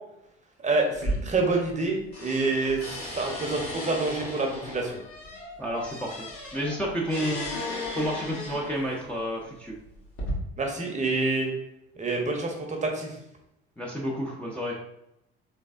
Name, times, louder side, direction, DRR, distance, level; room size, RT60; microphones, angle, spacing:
voice 1, 0.6-2.8 3.2-5.0 10.6-11.5 12.0-13.2, right 3 dB, 25° right, 2 dB, 0.8 m, -27 dB
sound 1, 0.9-1.9 2.1-9.0 9.7-10.3, left 1 dB, 45° left, 1.3 m, -36 dB
voice 2, 5.6-7.5 7.9-9.7 13.8-14.8, equal, 5° left, -4 dB, 0.6 m, -30 dB
3.9 x 3.3 x 2.4 m, 0.82 s
figure-of-eight pair, 60°, 31 cm